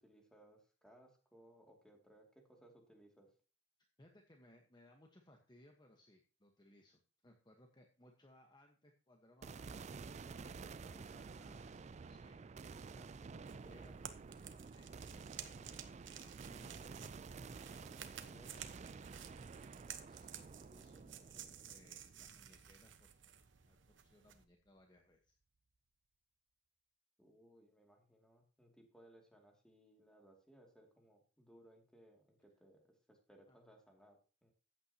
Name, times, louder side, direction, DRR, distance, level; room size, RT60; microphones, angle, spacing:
voice 1, 0.0-3.3 27.2-32.8 33.1-34.2 34.4-34.5, right 1 dB, 5° left, 1 dB, 2.4 m, -64 dB
voice 2, 4.0-9.7 10.2-14.0 14.7-15.2 15.6-15.8 16.2-17.1 17.5-18.7 19.8-25.4 33.5-33.6, left 1 dB, 25° left, 2 dB, 1.2 m, -65 dB
sound 1, 9.4-23.7, right 4 dB, 40° right, 0.4 m, -51 dB
sound 2, 13.4-24.4, right 9 dB, 80° right, 1.1 m, -54 dB
14.0 x 8.9 x 2.9 m, 0.36 s
head